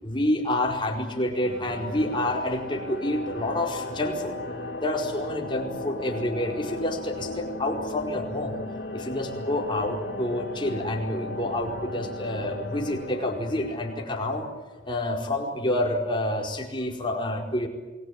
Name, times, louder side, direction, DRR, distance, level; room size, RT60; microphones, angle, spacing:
voice 1, 0.0-4.3 4.8-8.6 8.9-14.5 14.8-17.7, left 1 dB, 25° left, 1 dB, 4.6 m, -28 dB
sound 1, 1.4-15.0, left 2 dB, 70° left, 2.9 m, -36 dB
28.5 x 20.5 x 9.6 m, 1.2 s
head